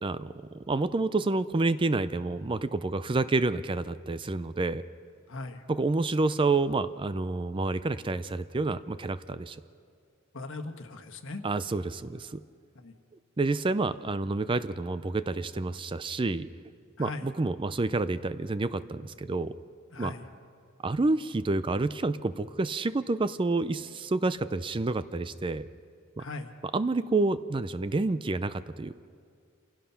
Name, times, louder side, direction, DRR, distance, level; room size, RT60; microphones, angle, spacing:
voice 1, 0.0-4.8 5.7-9.6 11.4-12.4 13.4-16.5 17.0-19.5 20.0-20.1 20.8-25.7 26.2-26.3 26.7-29.0, right 3 dB, 25° right, 14 dB, 0.4 m, -29 dB
voice 2, 5.3-5.6 10.3-11.4 12.7-12.9 17.0-17.3 19.9-20.2 26.2-26.5, left 3 dB, 65° left, 6 dB, 1.4 m, -39 dB
27.5 x 16.5 x 5.8 m, 2.2 s
head